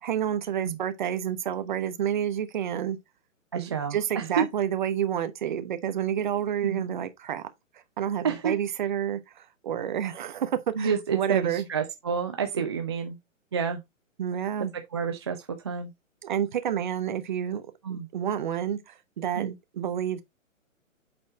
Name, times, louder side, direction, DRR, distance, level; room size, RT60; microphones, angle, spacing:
voice 1, 0.0-3.0 3.5-7.4 8.0-11.7 12.5-12.6 14.2-14.7 16.2-20.2, right 9 dB, 35° right, 1.1 m, -29 dB
voice 2, 3.5-4.4 6.6-6.9 8.2-8.5 10.8-13.2 13.5-13.8 14.9-15.9 17.8-18.1 19.4-19.5, right 6 dB, 20° right, 0.5 m, -29 dB
8.7 x 4.3 x 3.8 m
figure-of-eight pair, 130°, 40 cm